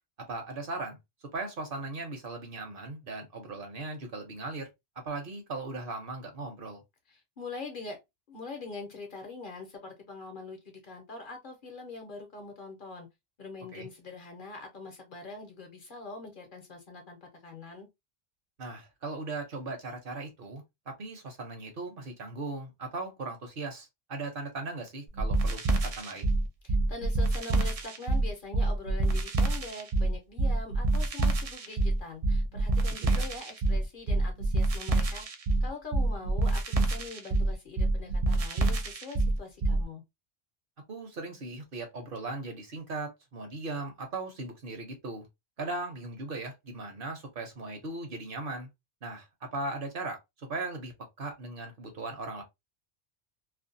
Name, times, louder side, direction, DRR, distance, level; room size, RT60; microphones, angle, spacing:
voice 1, 0.3-1.0 1.3-4.7 5.0-6.8 13.7-13.9 18.6-26.3 33.0-33.2 40.9-45.3 45.6-48.7 49.0-52.4, right 3 dB, 55° right, 0.9 m, -38 dB
voice 2, 7.1-8.0 8.3-13.1 13.4-17.9 26.6-35.3 35.6-40.0, left 3 dB, 55° left, 0.7 m, -43 dB
sound 1, 25.1-39.8, right 2 dB, 70° right, 0.3 m, -27 dB
2.5 x 2.2 x 2.5 m
omnidirectional pair, 1.2 m